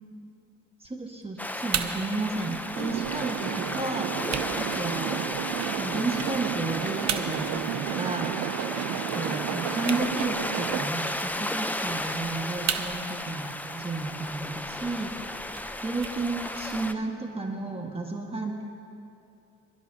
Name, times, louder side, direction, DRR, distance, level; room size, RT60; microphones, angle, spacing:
voice 1, 0.8-4.1 4.6-5.2 5.8-8.3 8.9-15.1 15.8-18.6, right 3 dB, 20° right, 0 dB, 1.5 m, -32 dB
sound 1, 0.8-16.8, right 8 dB, 65° right, 1.0 m, -40 dB
sound 2, 1.4-16.9, left 1 dB, 5° left, 0.6 m, -34 dB
sound 3, 2.7-10.9, right 12 dB, 80° right, 0.5 m, -33 dB
27.5 x 12.0 x 2.7 m, 2.6 s
cardioid pair, 90°, 30 cm